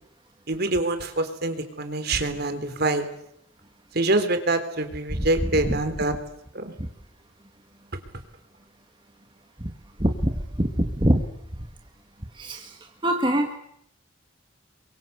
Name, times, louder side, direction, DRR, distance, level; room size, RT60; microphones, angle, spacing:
voice 1, 0.5-3.0 3.9-6.1 6.5-6.7, right 2 dB, 55° right, 8 dB, 3.5 m, -25 dB
voice 2, 10.0-11.2 12.4-13.5, right 1 dB, 25° right, 3 dB, 1.9 m, -24 dB
28.5 x 23.5 x 8.1 m, 0.73 s
head